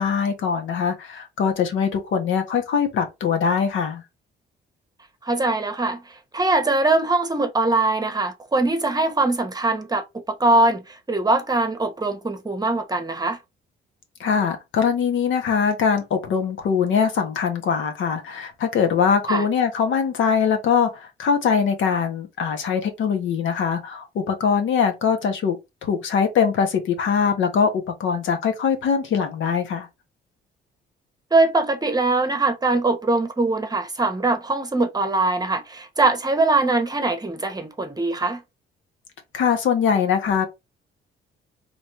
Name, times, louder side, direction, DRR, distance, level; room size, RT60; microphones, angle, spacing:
voice 1, 0.0-4.0 14.2-29.9 39.3-40.5, left 6 dB, 75° left, 1.1 m, -22 dB
voice 2, 5.2-6.0 6.3-10.8 11.1-13.4 19.3-19.4 31.3-38.4, right 2 dB, 20° right, 0.9 m, -22 dB
4.2 x 3.1 x 3.0 m
cardioid pair, 90°, 20 cm